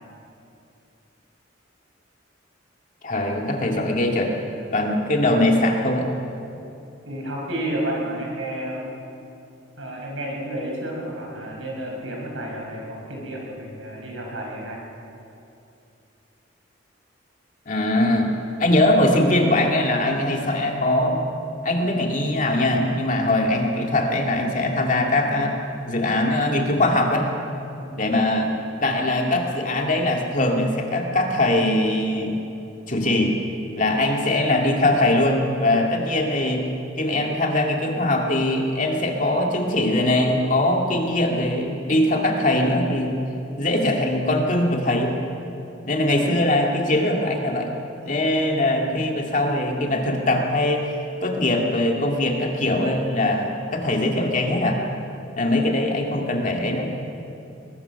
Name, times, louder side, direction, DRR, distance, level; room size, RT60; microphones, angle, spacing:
voice 1, 3.0-4.3 4.7-6.1 17.7-18.3 18.6-21.2 21.6-25.5 25.9-27.3 28.0-28.5 28.8-32.4 32.9-33.4 33.8-36.6 37.0-43.2 43.6-45.2 45.8-47.7 48.0-50.9 51.2-54.8 55.4-56.9, left 1 dB, 40° left, 1 dB, 2.3 m, -21 dB
voice 2, 7.1-8.9 9.8-14.8 27.8-28.0, right 1 dB, 85° right, -1 dB, 5.5 m, -31 dB
22.0 x 20.5 x 5.9 m, 2.7 s
head